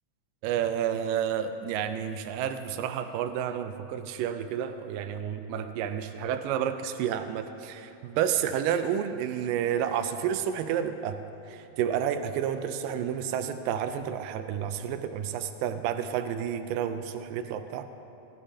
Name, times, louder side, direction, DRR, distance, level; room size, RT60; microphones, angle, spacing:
voice 1, 0.4-11.2 11.5-17.9, right 9 dB, 90° right, 9 dB, 2.2 m, -30 dB
18.5 x 13.5 x 2.7 m, 2.9 s
omnidirectional pair, 3.8 m